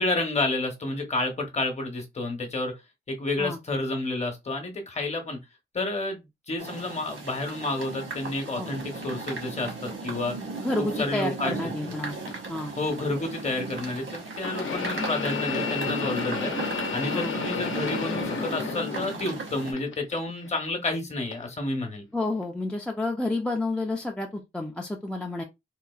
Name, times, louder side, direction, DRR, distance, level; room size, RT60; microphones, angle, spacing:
voice 1, 0.0-2.7 3.1-5.4 5.7-10.3 11.0-11.7 12.8-16.5 16.9-22.0, left 2 dB, 35° left, 0.8 m, -30 dB
sound 1, 6.6-19.7, right 3 dB, 80° right, 1.2 m, -36 dB
voice 2, 10.6-12.2 12.5-12.7 17.1-17.3 22.1-25.4, left 2 dB, 5° left, 0.4 m, -30 dB
sound 2, 12.3-12.4 14.4-19.4 19.7-20.6 21.3-21.4 22.4-22.5, left 5 dB, 85° left, 0.7 m, -31 dB
3.7 x 2.4 x 2.3 m
wide cardioid pair, 170°, 20 cm